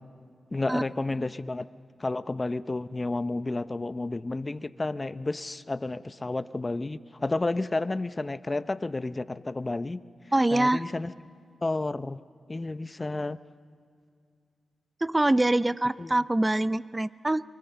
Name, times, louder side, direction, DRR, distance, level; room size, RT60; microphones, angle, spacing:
voice 1, 0.5-1.7 2.0-10.0 10.5-11.1 11.6-12.2 12.5-13.4 16.0-16.2, left 2 dB, 25° left, 14 dB, 0.7 m, -31 dB
voice 2, 10.3-10.8 15.0-17.4, right 1 dB, 15° right, 16 dB, 0.5 m, -24 dB
23.5 x 23.0 x 6.9 m, 2.2 s
cardioid pair, 70°, 0 cm